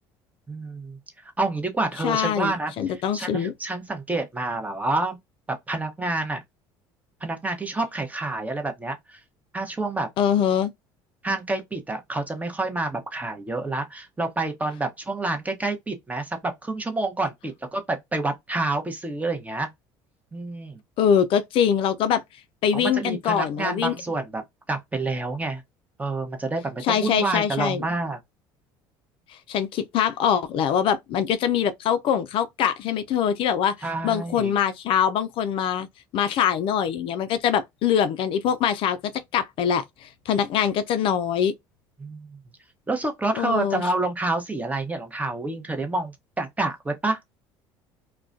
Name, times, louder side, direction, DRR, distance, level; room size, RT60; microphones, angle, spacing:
voice 1, 0.5-5.2 5.5-6.4 7.2-9.2 9.5-10.1 11.2-19.7 20.3-20.8 22.7-25.6 26.0-28.2 33.8-34.5 42.0-42.4 42.9-47.2, right 2 dB, 15° right, 0.8 m, -28 dB
voice 2, 2.0-3.5 10.2-10.7 21.0-22.2 22.6-23.9 26.8-27.8 29.5-33.7 34.0-35.9 36.1-41.5 43.4-43.8, left 8 dB, 55° left, 0.4 m, -23 dB
2.3 x 2.1 x 2.5 m
supercardioid pair, 85°, 10 cm